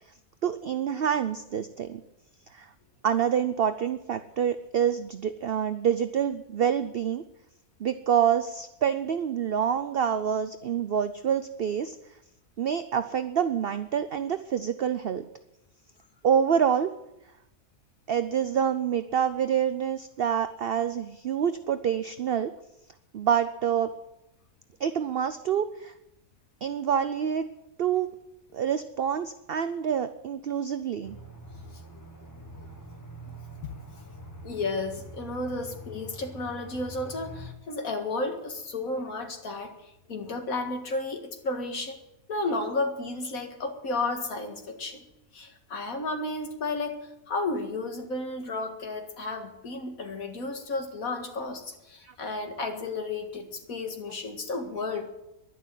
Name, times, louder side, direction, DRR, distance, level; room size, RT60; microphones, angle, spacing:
voice 1, 0.4-2.0 2.5-2.7 3.0-7.2 7.8-12.0 12.6-15.2 16.2-16.9 18.1-22.5 23.1-23.9 24.8-25.9 26.6-27.4 27.8-28.1 28.5-31.1 52.0-52.1, right 8 dB, 55° right, 11 dB, 0.7 m, -27 dB
Aircraft, 31.0-37.5, equal, 15° left, 1.4 m, -44 dB
voice 2, 34.4-39.7 40.1-42.0 42.3-45.0 45.3-47.0 47.3-55.1, left 2 dB, 80° left, 4 dB, 2.3 m, -32 dB
11.5 x 11.0 x 9.1 m, 0.87 s
omnidirectional pair, 1.4 m